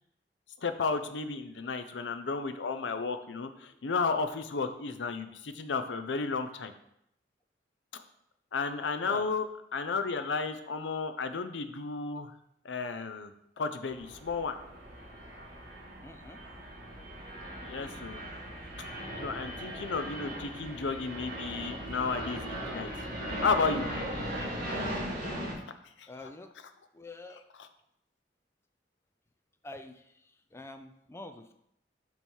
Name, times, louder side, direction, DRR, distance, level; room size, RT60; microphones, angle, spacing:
voice 1, 0.6-6.7 8.5-9.5 9.7-12.3 12.6-14.6 17.6-18.2 18.8-18.9 19.2-22.9 23.4-23.9 26.0-26.1, left 4 dB, 90° left, 9 dB, 0.6 m, -33 dB
sound 1, 13.9-25.5, equal, 50° right, 2.0 m, -38 dB
voice 2, 16.0-16.4 26.1-26.5 26.9-27.4 29.6-31.5, left 2 dB, 15° left, 7 dB, 0.4 m, -46 dB
7.0 x 3.1 x 5.4 m, 0.76 s
head